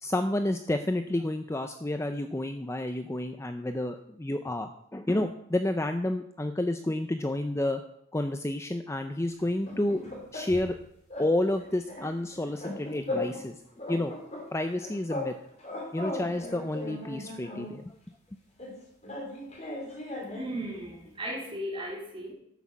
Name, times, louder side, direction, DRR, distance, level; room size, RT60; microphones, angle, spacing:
voice 1, 0.0-7.8 8.1-10.8 11.2-13.6 13.9-14.1 14.5-15.3 15.9-17.9, left 1 dB, 15° left, 7 dB, 0.5 m, -30 dB
sound 1, 9.4-10.8 11.1-11.3 11.6-13.5 13.8-15.3 15.6-17.8 18.6-20.6, left 2 dB, 35° left, 3.4 m, -37 dB
voice 2, 20.3-22.3, right 1 dB, 25° right, -4 dB, 3.9 m, -36 dB
12.5 x 6.5 x 7.2 m, 0.73 s
head